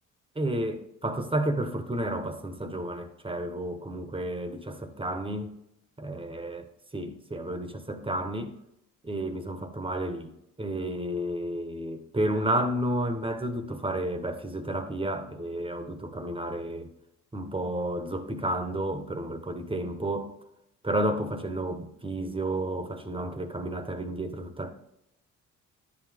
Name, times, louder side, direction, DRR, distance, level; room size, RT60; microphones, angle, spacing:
voice 1, 0.3-5.5 6.0-8.5 9.0-10.3 10.6-16.9 17.3-20.3 20.8-24.7, right 1 dB, 15° right, 1.3 m, -31 dB
10.5 x 7.7 x 3.6 m
supercardioid pair, 65°, 33 cm